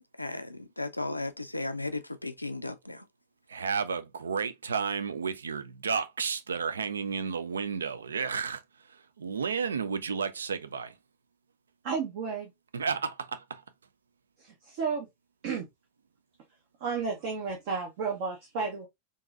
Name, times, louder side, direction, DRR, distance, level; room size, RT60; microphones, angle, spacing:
voice 1, 0.2-3.1, left 2 dB, 85° left, 0.4 m, -35 dB
voice 2, 3.5-11.0 12.7-13.6, right 5 dB, 70° right, 0.3 m, -32 dB
voice 3, 11.8-12.5 14.4-15.1 15.4-15.7 16.8-18.9, right 5 dB, 50° right, 0.7 m, -32 dB
3.7 x 2.6 x 2.3 m
figure-of-eight pair, 90°, 0 cm